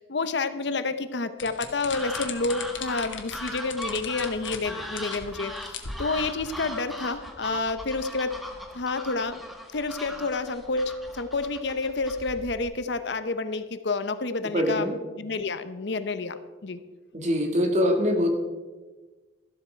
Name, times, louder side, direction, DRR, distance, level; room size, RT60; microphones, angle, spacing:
voice 1, 0.0-8.3 8.7-9.4 9.7-14.9 15.2-16.8, left 3 dB, 65° left, 11 dB, 0.8 m, -29 dB
sound 1, 1.4-4.6 5.0-5.2 5.6-6.5, left 6 dB, 80° left, 1.5 m, -37 dB
sound 2, 1.9-12.7, equal, ahead, 1.4 m, -39 dB
voice 2, 14.5-14.9 17.1-18.3, equal, 40° right, 4 dB, 1.9 m, -23 dB
13.0 x 12.5 x 4.4 m, 1.2 s
head